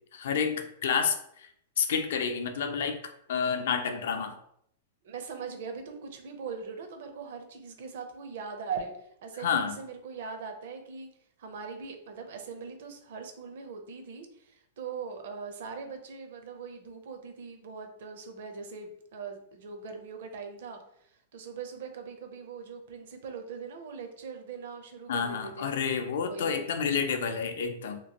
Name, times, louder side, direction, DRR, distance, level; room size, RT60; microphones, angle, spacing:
voice 1, 0.1-1.5 1.8-3.0 3.3-4.4 9.4-9.8 25.1-28.0, left 6 dB, 70° left, 7 dB, 0.4 m, -29 dB
voice 2, 5.0-11.1 11.4-25.7 26.3-26.7, right 5 dB, 60° right, 5 dB, 0.6 m, -41 dB
3.0 x 2.5 x 2.8 m, 0.70 s
supercardioid pair, 165°, 0 cm